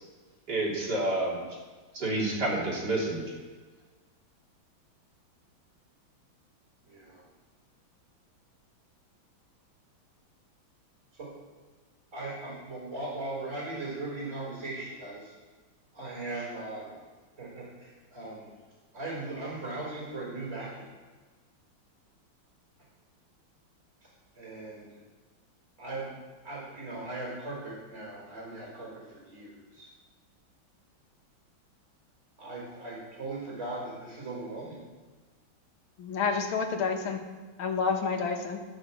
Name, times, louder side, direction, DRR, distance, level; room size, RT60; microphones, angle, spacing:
voice 1, 0.5-1.4 1.9-3.3, right 2 dB, 50° right, -3 dB, 3.4 m, -29 dB
voice 2, 6.9-7.2 11.1-11.3 12.1-15.3 15.9-16.9 17.4-18.5 18.9-20.9 24.3-25.0 25.8-26.2 26.4-29.5 32.4-34.8, right 2 dB, 35° right, -5 dB, 4.7 m, -38 dB
voice 3, 36.0-37.2 37.6-38.6, left 5 dB, 75° left, 4 dB, 2.1 m, -29 dB
14.5 x 6.5 x 7.2 m, 1.4 s
omnidirectional pair, 2.3 m